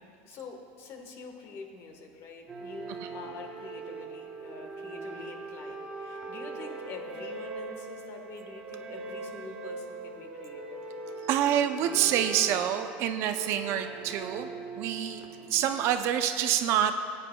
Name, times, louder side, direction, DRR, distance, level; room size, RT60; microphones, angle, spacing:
voice 1, 0.2-10.8, left 4 dB, 50° left, 3 dB, 1.4 m, -46 dB
sound 1, 2.5-15.9, right 3 dB, 20° right, 1.2 m, -41 dB
voice 2, 11.2-14.5 14.8-17.0, right 10 dB, 55° right, 8 dB, 0.6 m, -27 dB
16.5 x 9.1 x 2.3 m, 2.4 s
supercardioid pair, 125°, 5 cm